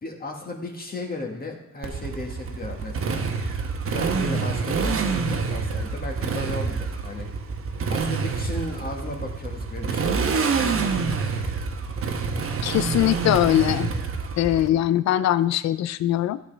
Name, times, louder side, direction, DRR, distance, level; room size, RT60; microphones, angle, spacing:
voice 1, 0.0-3.2 3.8-7.3 7.9-11.1, left 2 dB, 30° left, 0 dB, 1.7 m, -35 dB
Motorcycle, 1.8-14.7, right 5 dB, 45° right, 1.1 m, -27 dB
voice 2, 12.6-13.9 14.4-16.4, left 13 dB, 65° left, 15 dB, 0.5 m, -21 dB
11.5 x 7.5 x 3.4 m, 0.82 s
cardioid pair, 90°, 30 cm